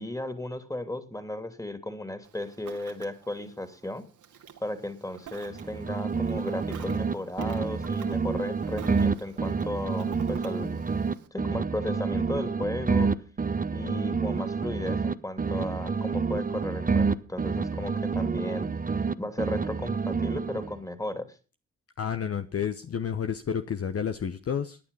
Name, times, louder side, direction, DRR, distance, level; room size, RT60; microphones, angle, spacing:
voice 1, 0.0-4.0 4.6-10.8 11.3-13.1 13.7-18.7 19.2-21.4, left 1 dB, 10° left, 10 dB, 2.9 m, -35 dB
Ocean, 2.2-11.3, right 8 dB, 70° right, 2.0 m, -48 dB
sound 1, 5.5-7.1 7.4-11.1 11.4-15.1 15.4-19.1 19.4-20.8, right 5 dB, 25° right, 1.0 m, -28 dB
voice 2, 22.0-24.8, left 7 dB, 50° left, 9 dB, 1.0 m, -30 dB
15.5 x 9.7 x 5.4 m, 0.35 s
hypercardioid pair, 45°, 31 cm